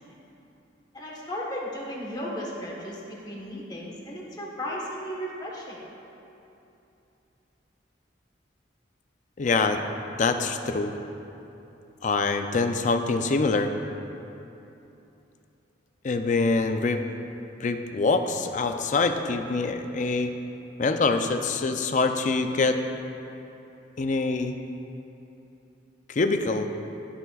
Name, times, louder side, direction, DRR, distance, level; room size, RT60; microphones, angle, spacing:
voice 1, 0.9-5.8, equal, 20° left, -3 dB, 1.2 m, -35 dB
voice 2, 9.4-9.8 10.2-10.9 12.0-13.7 16.0-17.0 17.6-20.3 20.8-22.8 24.0-24.5 26.1-26.7, left 3 dB, 40° left, 7 dB, 0.4 m, -25 dB
16.5 x 5.7 x 2.4 m, 2.9 s
head